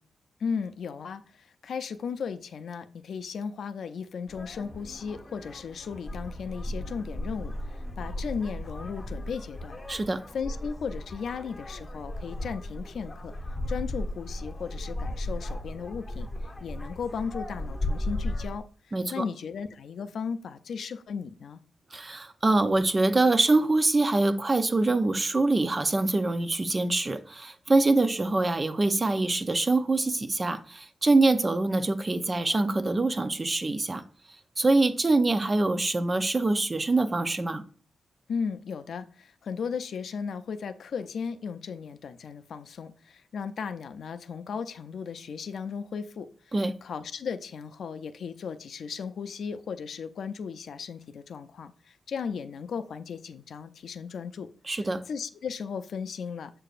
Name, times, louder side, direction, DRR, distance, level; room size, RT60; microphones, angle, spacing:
voice 1, 0.4-9.8 10.3-13.3 13.7-16.3 16.6-21.6 38.3-46.5 46.8-54.5 54.8-56.5, left 6 dB, 70° left, 0.5 m, -36 dB
sound 1, 4.3-18.6, left 1 dB, 20° left, 0.9 m, -36 dB
voice 2, 9.9-10.2 18.9-19.2 21.9-34.0 34.6-37.6 46.5-46.8 54.7-55.0, right 2 dB, 25° right, 0.5 m, -24 dB
7.6 x 6.6 x 2.5 m
wide cardioid pair, 135°, 0 cm